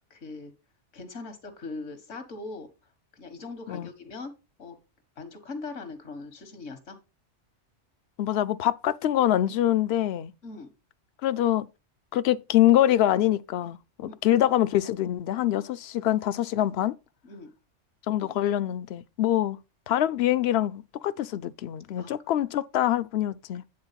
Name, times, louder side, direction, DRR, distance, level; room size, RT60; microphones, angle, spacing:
voice 1, 0.1-0.5 0.9-2.7 3.1-4.3 4.6-4.8 5.2-7.0 10.4-10.7 14.1-14.4 17.2-17.5 22.0-22.1, left 3 dB, 85° left, 1.8 m, -40 dB
voice 2, 8.2-10.3 11.2-11.7 12.1-16.9 18.1-19.6 19.9-23.6, left 12 dB, 65° left, 0.7 m, -25 dB
9.6 x 3.8 x 5.7 m
omnidirectional pair, 1.2 m